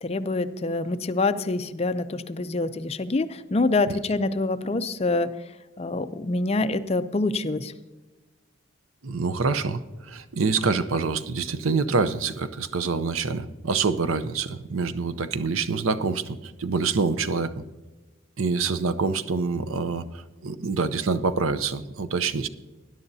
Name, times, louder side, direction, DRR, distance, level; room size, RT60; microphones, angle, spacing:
voice 1, 0.0-5.4 5.8-7.7, left 2 dB, 30° left, 12 dB, 0.4 m, -26 dB
voice 2, 9.0-9.8 10.1-17.6 18.4-22.5, right 4 dB, 90° right, 13 dB, 0.7 m, -26 dB
20.0 x 11.0 x 2.7 m, 1.2 s
head